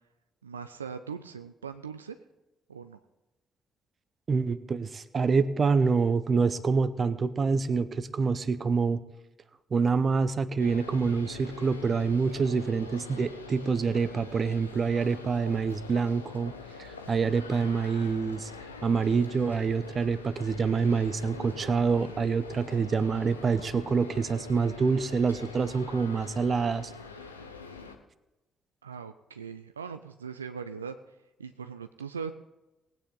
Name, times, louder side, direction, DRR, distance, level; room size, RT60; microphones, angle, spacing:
voice 1, 0.4-2.2 2.7-3.0 28.8-32.3, right 6 dB, 85° right, 9 dB, 0.3 m, -40 dB
voice 2, 4.3-9.0 9.7-16.5 16.8-18.5 18.8-26.9, right 5 dB, 40° right, 15 dB, 0.7 m, -26 dB
sound 1, 10.6-28.0, left 4 dB, 85° left, 0.7 m, -44 dB
19.0 x 9.0 x 3.8 m, 0.99 s
figure-of-eight pair, 40°, 0 cm